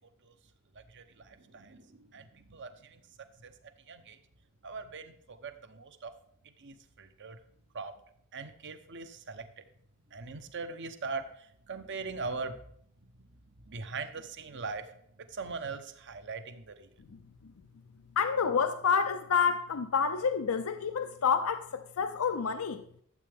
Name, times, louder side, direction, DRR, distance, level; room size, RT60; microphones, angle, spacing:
voice 1, 0.7-4.2 4.6-6.1 6.4-7.4 7.7-7.9 8.3-9.5 10.1-12.6 13.6-16.9, right 4 dB, 55° right, 0.9 m, -41 dB
voice 2, 17.1-17.5 18.2-22.8, left 6 dB, 75° left, 0.5 m, -29 dB
12.5 x 7.7 x 3.5 m
head